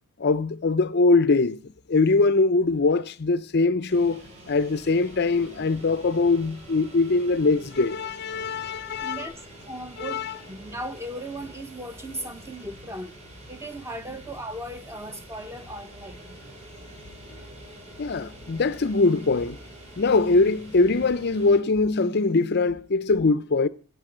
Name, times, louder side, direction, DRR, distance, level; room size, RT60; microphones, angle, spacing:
voice 1, 0.2-1.6 1.9-9.3 10.0-10.4 18.0-19.6 20.0-23.7, left 3 dB, 50° left, 0.5 m, -22 dB
sound 1, 3.9-21.6, right 1 dB, 30° right, 5.6 m, -46 dB
voice 2, 8.6-13.2 13.5-16.4, right 1 dB, 10° right, 1.0 m, -37 dB
15.5 x 6.8 x 7.8 m
head